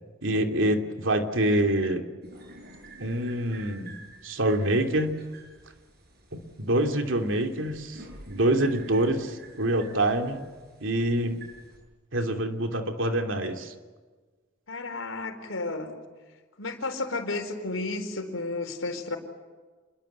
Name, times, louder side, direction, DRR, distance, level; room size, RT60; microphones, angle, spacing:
voice 1, 0.2-2.0 3.0-4.0 4.2-5.2 6.3-10.5 10.8-11.4 12.1-13.7, right 1 dB, 70° right, 5 dB, 2.9 m, -26 dB
sound 1, 2.2-11.8, right 2 dB, 50° right, 8.0 m, -49 dB
voice 2, 14.7-15.9 16.6-19.2, left 2 dB, 85° left, 6 dB, 4.4 m, -32 dB
28.0 x 22.0 x 8.3 m, 1.4 s
head